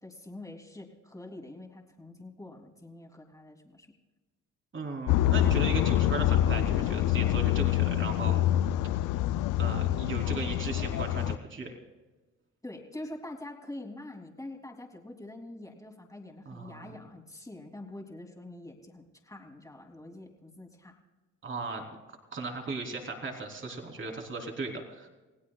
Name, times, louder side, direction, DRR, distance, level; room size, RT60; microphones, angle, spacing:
voice 1, 0.0-3.9 12.6-21.0, left 1 dB, 10° left, 1 dB, 3.1 m, -45 dB
voice 2, 4.7-8.4 9.6-11.7 16.5-16.9 21.4-21.8 22.3-25.1, right 3 dB, 40° right, 2 dB, 3.7 m, -37 dB
sound 1, 5.1-11.4, left 12 dB, 90° left, 0.5 m, -26 dB
28.5 x 17.0 x 2.4 m, 1.2 s
cardioid pair, 90°, 30 cm